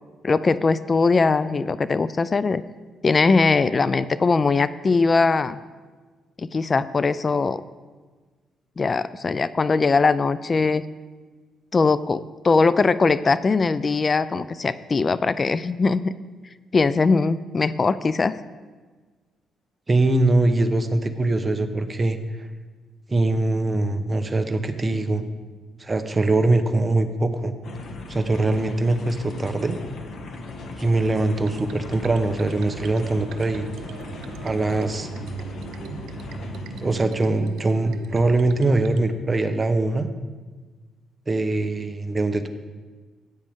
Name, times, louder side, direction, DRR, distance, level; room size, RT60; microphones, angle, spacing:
voice 1, 0.2-2.6 3.0-5.6 6.4-7.6 8.8-10.8 11.7-16.1 16.7-18.3, left 4 dB, 35° left, 15 dB, 0.4 m, -21 dB
voice 2, 19.9-22.5 23.1-25.3 25.8-27.5 28.1-29.8 30.8-33.7 34.4-35.1 36.8-40.1 41.3-42.5, right 2 dB, 25° right, 8 dB, 0.9 m, -22 dB
sound 1, 27.6-37.0, left 2 dB, 60° left, 1.4 m, -37 dB
sound 2, 31.3-39.0, right 6 dB, 85° right, 0.7 m, -39 dB
15.0 x 9.1 x 3.6 m, 1.4 s
cardioid pair, 90°, 0 cm